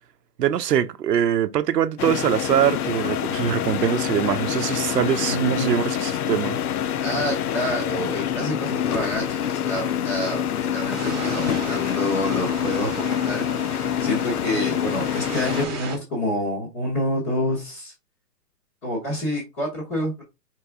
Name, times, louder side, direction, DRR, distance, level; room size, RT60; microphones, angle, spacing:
voice 1, 0.4-6.6, right 10 dB, 80° right, 0.7 m, -23 dB
sound 1, 2.0-15.7, left 9 dB, 65° left, 0.6 m, -26 dB
voice 2, 5.3-6.3 7.0-10.4 10.7-17.9 18.8-20.2, left 1 dB, 10° left, 0.7 m, -28 dB
sound 2, 10.9-16.0, right 4 dB, 15° right, 0.9 m, -35 dB
4.5 x 3.0 x 3.4 m
hypercardioid pair, 160°, 48 cm